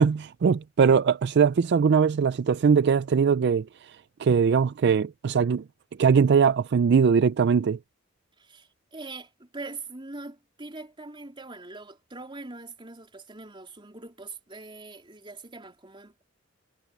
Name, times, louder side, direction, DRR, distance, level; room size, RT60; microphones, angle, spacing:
voice 1, 0.0-3.9 4.2-5.6 6.0-7.8, right 6 dB, 55° right, 0.4 m, -21 dB
voice 2, 8.4-16.3, right 3 dB, 25° right, 3.7 m, -42 dB
head